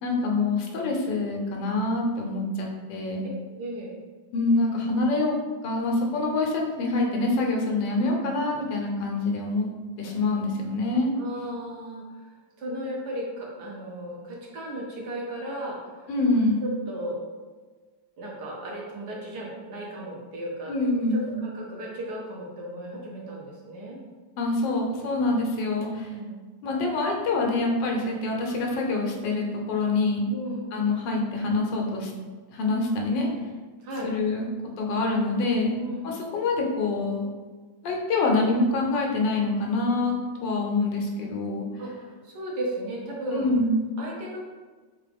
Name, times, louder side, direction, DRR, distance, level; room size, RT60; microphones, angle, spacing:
voice 1, 0.0-3.2 4.3-5.3 5.6-9.7 10.0-11.1 16.1-16.6 20.7-21.3 24.4-26.1 26.6-30.2 30.7-32.1 32.5-33.3 34.0-34.5 34.8-35.7 36.0-37.3 37.8-41.6 43.3-43.9, left 2 dB, 80° left, 0 dB, 1.4 m, -25 dB
voice 2, 3.5-4.0 11.2-12.2 12.6-15.8 16.6-17.2 18.2-20.7 21.1-24.0 25.9-26.3 30.3-30.7 33.8-34.1 35.7-36.1 41.8-41.9 42.2-43.5 44.0-44.4, right 1 dB, 65° right, -3 dB, 1.4 m, -35 dB
3.7 x 3.7 x 3.4 m, 1.4 s
omnidirectional pair, 2.0 m